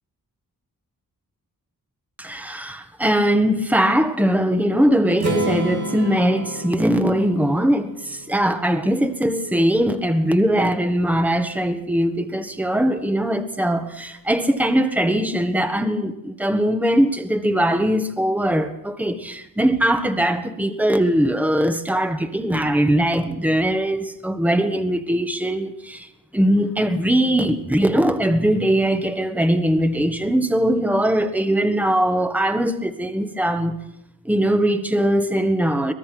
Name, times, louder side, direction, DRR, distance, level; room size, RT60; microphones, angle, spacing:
voice 1, 2.2-26.1 26.3-33.7 34.2-35.9, equal, 5° right, 7 dB, 1.5 m, -21 dB
Strum, 5.2-9.1, right 2 dB, 60° right, 4.5 m, -30 dB
23.5 x 19.5 x 6.1 m, 0.86 s
wide cardioid pair, 90°, 35 cm